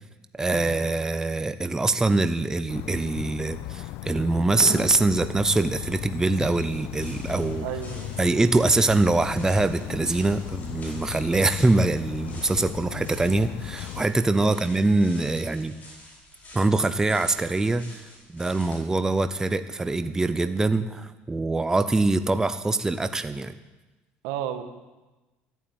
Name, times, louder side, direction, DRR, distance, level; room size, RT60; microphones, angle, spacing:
voice 1, 0.3-7.7 8.2-15.8 16.5-18.0 18.3-23.5, right 2 dB, 10° right, 11 dB, 0.7 m, -24 dB
sound 1, 2.7-14.0, left 16 dB, 70° left, 0.5 m, -37 dB
sound 2, 4.3-18.8, left 1 dB, 35° left, 6.0 m, -46 dB
voice 2, 7.6-8.3 12.5-12.6 24.2-24.6, right 10 dB, 80° right, 7 dB, 1.7 m, -34 dB
14.0 x 9.2 x 8.9 m, 1.1 s
supercardioid pair, 110°, 5 cm